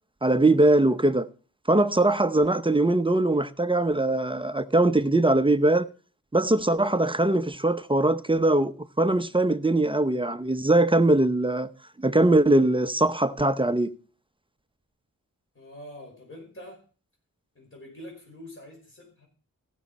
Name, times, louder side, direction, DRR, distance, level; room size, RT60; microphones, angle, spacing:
voice 1, 0.2-1.3 1.7-5.9 6.3-11.7 12.0-13.9, right 2 dB, 15° right, 0.7 m, -21 dB
voice 2, 15.5-16.8 17.5-19.3, left 1 dB, 40° left, 5.0 m, -45 dB
16.0 x 6.4 x 4.1 m
cardioid pair, 65°, 34 cm